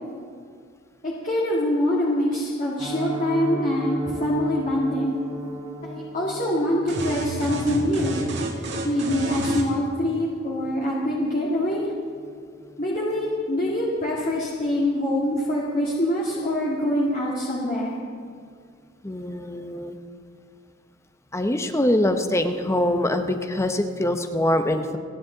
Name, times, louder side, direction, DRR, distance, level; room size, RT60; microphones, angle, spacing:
voice 1, 1.0-5.2 5.8-8.2 8.8-11.8 12.8-17.9, left 1 dB, 40° left, -6 dB, 2.1 m, -24 dB
Piano, 2.8-13.7 14.0-14.2 14.5-14.6 15.0-15.2 15.6-15.7, right 2 dB, 15° right, 1.3 m, -37 dB
sound 1, 6.9-9.7, right 2 dB, 60° right, 1.9 m, -30 dB
voice 2, 19.0-20.0 21.3-25.0, left 1 dB, 15° left, 7 dB, 0.8 m, -24 dB
29.5 x 10.0 x 3.9 m, 2.2 s
head